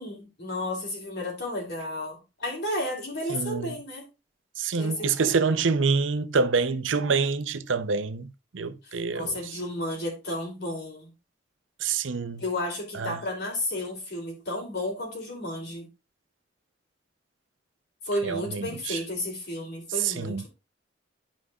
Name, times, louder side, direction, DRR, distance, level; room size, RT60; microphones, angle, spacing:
voice 1, 0.0-4.0 4.8-5.4 8.8-11.1 12.4-15.9 18.0-20.5, left 1 dB, 60° left, 3.2 m, -32 dB
voice 2, 3.3-3.8 4.6-9.4 11.8-12.4 12.9-13.2 18.2-19.0 20.0-20.4, right 5 dB, 80° right, 0.6 m, -26 dB
11.5 x 5.0 x 2.4 m
head